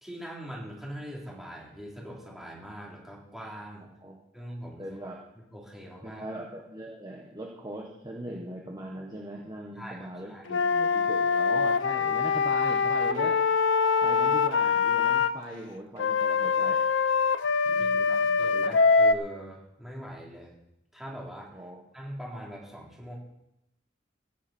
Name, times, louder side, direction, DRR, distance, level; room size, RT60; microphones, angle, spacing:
voice 1, 0.0-3.8 4.3-5.0 5.5-6.2 9.7-10.5 17.8-20.5 20.9-21.6 21.9-23.1, equal, ahead, -4 dB, 3.6 m, -42 dB
voice 2, 4.8-5.2 6.0-13.4 14.0-16.8 17.6-18.8 21.5-21.8, right 1 dB, 20° right, -1 dB, 1.4 m, -40 dB
Wind instrument woodwind instrument, 10.5-15.3 16.0-19.1, left 5 dB, 70° left, 0.6 m, -24 dB
15.5 x 10.5 x 4.5 m, 0.84 s
head